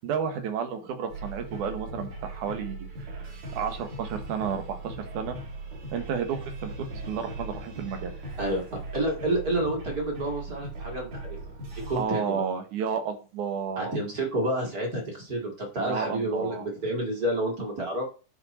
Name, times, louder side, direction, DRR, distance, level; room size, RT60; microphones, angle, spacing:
voice 1, 0.0-5.4 5.9-8.1 12.0-14.0 15.8-16.7, right 7 dB, 75° right, 7 dB, 2.7 m, -32 dB
sound 1, 1.1-12.0, right 2 dB, 60° right, 4.0 m, -39 dB
voice 2, 8.4-11.4 11.9-12.4 13.8-18.1, right 1 dB, 30° right, 1 dB, 2.2 m, -29 dB
10.5 x 4.8 x 4.2 m, 0.36 s
omnidirectional pair, 3.6 m